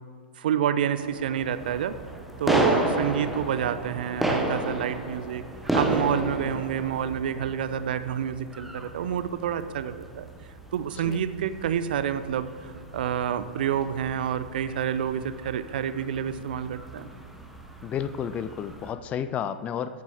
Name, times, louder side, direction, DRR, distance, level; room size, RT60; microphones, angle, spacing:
voice 1, 0.4-2.0 2.4-5.4 5.7-10.3 10.7-12.5 12.9-17.1, right 9 dB, 55° right, 13 dB, 0.6 m, -28 dB
sound 1, 1.0-18.9, right 1 dB, ahead, 1.1 m, -33 dB
voice 2, 2.5-3.0 11.0-11.2 17.8-20.0, left 8 dB, 20° left, 13 dB, 0.4 m, -32 dB
14.0 x 9.6 x 3.5 m, 2.3 s
figure-of-eight pair, 105°, 6 cm